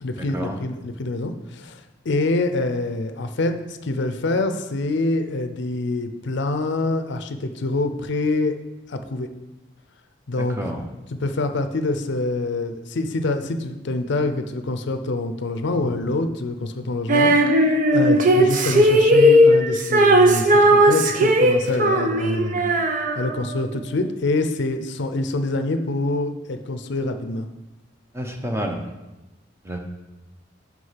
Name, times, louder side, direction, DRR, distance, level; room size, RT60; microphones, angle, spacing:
voice 1, 0.0-8.5 8.9-9.3 10.3-10.6 11.2-17.3 17.9-22.8 23.2-27.5, left 2 dB, 65° left, 8 dB, 0.6 m, -25 dB
voice 2, 10.4-10.8 28.1-28.8 29.6-29.8, right 1 dB, 15° right, 3 dB, 0.9 m, -29 dB
Female singing, 17.1-23.6, equal, 45° right, 0.7 m, -17 dB
6.4 x 5.1 x 5.7 m, 1.0 s
head